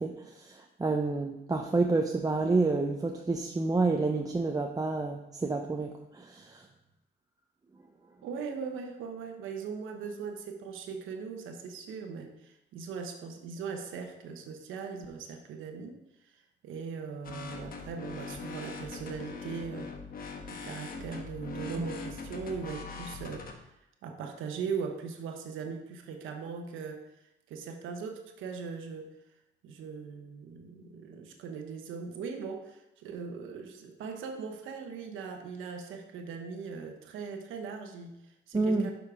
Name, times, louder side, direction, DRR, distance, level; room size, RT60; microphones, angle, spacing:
voice 1, 0.0-6.7 21.8-21.9 38.5-38.9, right 3 dB, 20° right, 2 dB, 0.6 m, -29 dB
voice 2, 8.2-19.9 20.5-23.5 24.0-27.1 27.5-29.1 29.6-38.9, right 5 dB, 85° right, 4 dB, 1.0 m, -40 dB
sound 1, 17.2-23.5, left 4 dB, 45° left, 1.1 m, -41 dB
6.9 x 5.2 x 4.9 m, 0.87 s
cardioid pair, 90°, 20 cm